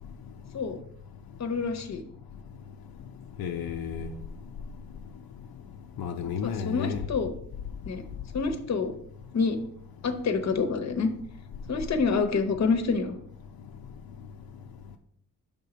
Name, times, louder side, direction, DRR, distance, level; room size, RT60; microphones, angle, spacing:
voice 1, 1.4-2.0 6.4-7.3 7.9-8.0 8.3-8.9 9.3-9.6 10.0-11.1 11.7-13.2, left 4 dB, 50° left, 0.8 m, -27 dB
voice 2, 3.4-4.1 6.0-7.1, left 7 dB, 75° left, 0.6 m, -32 dB
6.9 x 3.7 x 5.0 m
wide cardioid pair, 120°, 36 cm